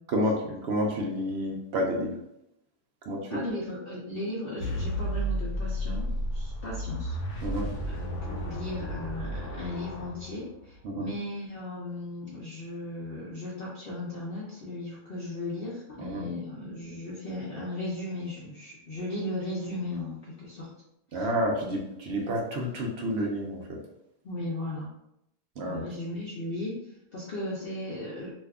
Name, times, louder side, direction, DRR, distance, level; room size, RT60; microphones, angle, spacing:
voice 1, 0.1-2.1 3.1-3.2 7.4-7.7 10.8-11.1 16.0-16.2 21.1-23.8 25.6-25.8, equal, 80° right, 0 dB, 0.5 m, -29 dB
voice 2, 3.3-7.5 7.9-20.7 21.1-21.3 24.2-24.9 25.6-28.3, left 1 dB, 85° left, -5 dB, 0.5 m, -36 dB
sound 1, 4.6-10.8, equal, 70° left, 1.1 m, -33 dB
2.7 x 2.3 x 3.4 m, 0.80 s
omnidirectional pair, 1.8 m